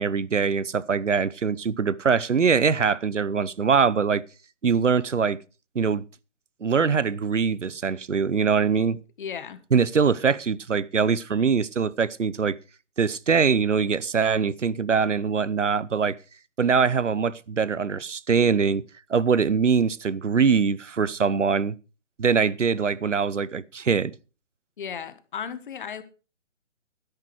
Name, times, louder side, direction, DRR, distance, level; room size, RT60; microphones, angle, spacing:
voice 1, 0.0-4.2 4.6-5.4 5.7-6.0 6.6-9.0 9.7-12.6 13.0-16.2 16.6-18.8 19.1-21.8 22.2-24.1, right 6 dB, 85° right, 0.9 m, -23 dB
voice 2, 9.2-9.6 24.8-26.0, left 7 dB, 45° left, 1.5 m, -35 dB
12.5 x 10.5 x 4.7 m
figure-of-eight pair, 145°, 36 cm